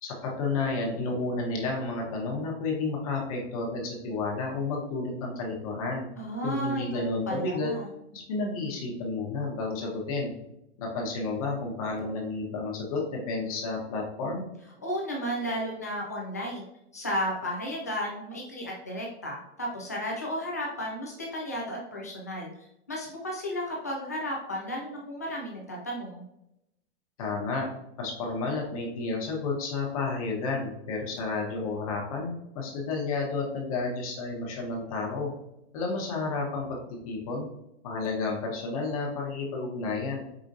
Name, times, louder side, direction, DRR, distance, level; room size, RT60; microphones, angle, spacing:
voice 1, 0.0-6.1 6.4-7.7 8.1-10.3 10.8-14.4 27.2-27.7 28.0-35.3 35.7-36.7 37.0-37.5 37.8-40.2, left 3 dB, 30° left, -1 dB, 0.9 m, -31 dB
voice 2, 6.2-7.9 14.8-22.5 22.9-26.2, equal, 15° left, -3 dB, 0.3 m, -33 dB
5.0 x 3.6 x 2.6 m, 0.83 s
supercardioid pair, 180°, 34 cm